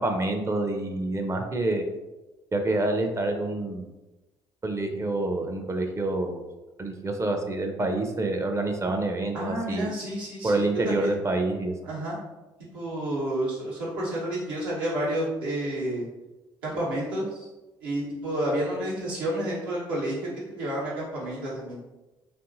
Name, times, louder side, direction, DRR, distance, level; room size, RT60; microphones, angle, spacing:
voice 1, 0.0-1.8 2.5-3.9 4.6-6.4 6.8-9.9 10.4-11.7, right 2 dB, 25° right, 4 dB, 0.5 m, -27 dB
voice 2, 9.3-11.1 11.8-12.2 12.7-16.1 16.6-17.5 17.8-21.8, right 1 dB, 85° right, -6 dB, 0.9 m, -30 dB
2.6 x 2.6 x 2.5 m, 1.1 s
hypercardioid pair, 50°, 12 cm